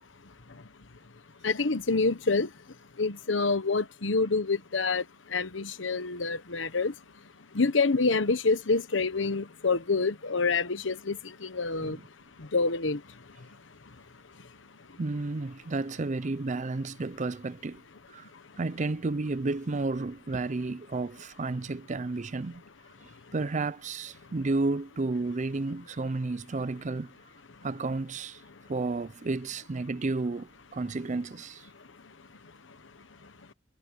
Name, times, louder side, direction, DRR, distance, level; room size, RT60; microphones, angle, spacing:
voice 1, 1.4-2.5 3.0-5.0 5.3-6.9 7.5-12.0 12.5-13.0, left 4 dB, 75° left, 1.2 m, -27 dB
voice 2, 15.0-17.8 18.1-18.3 18.6-22.6 23.0-27.1 27.6-28.4 28.7-31.7, right 3 dB, 40° right, 0.5 m, -32 dB
head